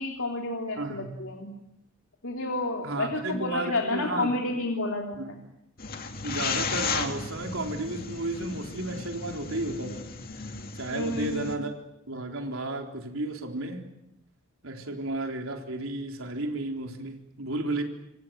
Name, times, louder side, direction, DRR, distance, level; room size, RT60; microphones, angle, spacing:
voice 1, 0.0-1.5 2.2-5.4 10.9-11.6, left 2 dB, 65° left, 1 dB, 3.3 m, -30 dB
voice 2, 0.8-1.2 2.8-4.3 5.1-5.3 6.2-10.1 10.7-11.7 12.1-13.8 14.6-17.8, right 2 dB, 75° right, 3 dB, 3.9 m, -33 dB
sound 1, 5.8-11.5, left 5 dB, 45° left, 2.5 m, -35 dB
28.0 x 25.5 x 7.8 m, 0.82 s
head